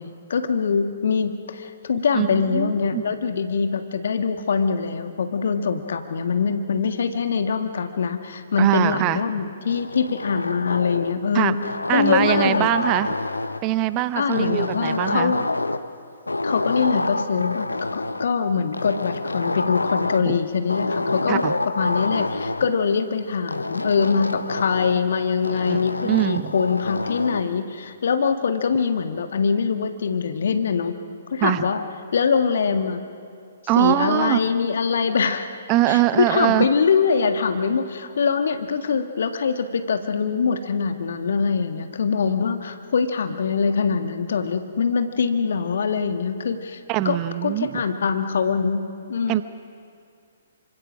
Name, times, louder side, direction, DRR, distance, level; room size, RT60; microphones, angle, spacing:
voice 1, 0.0-11.6 11.9-12.7 14.2-15.4 16.4-21.4 21.8-30.9 31.3-31.8 32.1-33.0 33.8-35.5 35.9-46.8 47.1-47.2 47.4-48.8 49.1-49.4, left 5 dB, 55° left, 7 dB, 1.7 m, -23 dB
voice 2, 2.1-3.0 8.6-9.2 11.3-11.6 11.9-13.1 13.6-15.3 20.2-20.4 21.3-21.5 25.5-25.8 26.0-26.5 31.4-31.6 33.7-34.4 35.7-36.7 46.9-47.8 49.3-49.4, right 15 dB, 25° right, 14 dB, 0.7 m, -22 dB
sound 1, 9.7-11.2 11.6-13.7 14.3-16.0 16.3-18.3 18.7-20.3 20.7-22.7 23.5-25.0 25.4-27.5, left 2 dB, 80° left, 0.9 m, -27 dB
27.0 x 25.5 x 6.3 m, 2.3 s
figure-of-eight pair, 125°, 0 cm